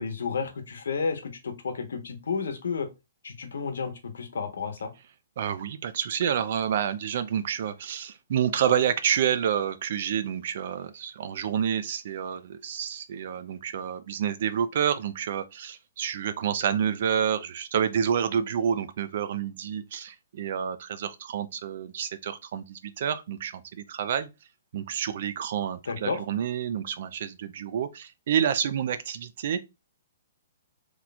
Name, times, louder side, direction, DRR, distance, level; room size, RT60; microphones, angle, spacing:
voice 1, 0.0-2.9 3.2-4.9 25.9-26.2, left 5 dB, 85° left, 1.0 m, -31 dB
voice 2, 5.4-24.3 24.7-29.6, right 8 dB, 50° right, 0.4 m, -28 dB
3.0 x 2.3 x 4.0 m
hypercardioid pair, 165°, 0 cm